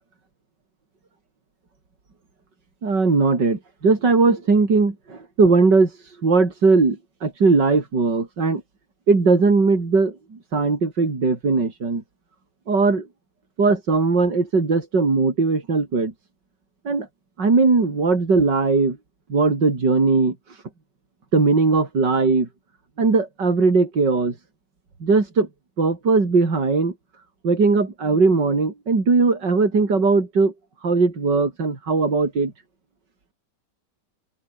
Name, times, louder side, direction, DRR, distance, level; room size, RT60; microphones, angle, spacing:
voice 1, 2.8-5.9 6.2-8.6 9.1-10.2 10.5-12.0 12.7-13.1 13.6-16.1 16.8-17.1 17.4-19.0 19.3-20.3 21.3-22.5 23.0-24.3 25.0-25.5 25.8-26.9 27.4-30.5 30.8-32.5, right 4 dB, 80° right, 4.5 m, -19 dB
open air
omnidirectional pair, 1.9 m